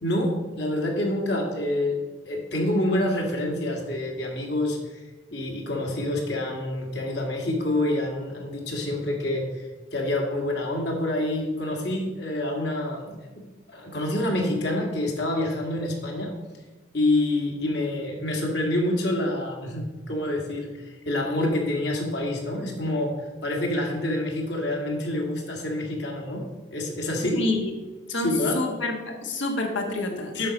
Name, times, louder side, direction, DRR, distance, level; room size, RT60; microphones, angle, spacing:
voice 1, 0.0-4.8 5.3-9.6 9.9-13.1 13.7-16.3 16.9-23.1 23.4-26.4 26.7-27.4 28.2-28.6 30.3-30.5, left 1 dB, 60° left, 0 dB, 1.9 m, -27 dB
voice 2, 27.4-27.7 28.1-30.4, left 2 dB, 75° left, 2 dB, 1.5 m, -28 dB
7.6 x 6.0 x 5.3 m, 1.2 s
head